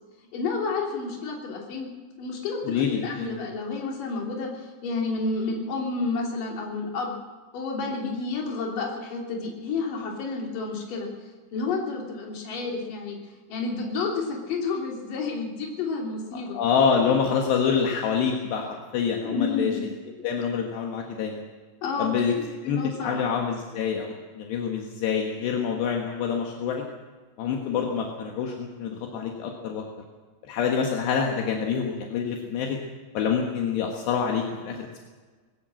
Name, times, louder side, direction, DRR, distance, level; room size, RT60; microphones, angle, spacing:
voice 1, 0.3-1.9 2.2-7.1 7.5-11.1 11.5-13.2 13.5-16.6 19.2-19.8 21.8-22.2 22.6-23.2, left 4 dB, 50° left, 0 dB, 4.4 m, -30 dB
voice 2, 2.7-3.3 16.5-19.7 20.2-21.4 22.0-22.3 22.7-26.8 27.4-29.9 30.4-32.8 33.2-35.0, left 6 dB, 70° left, 1 dB, 3.6 m, -26 dB
20.0 x 17.0 x 7.7 m, 1.4 s
omnidirectional pair, 5.2 m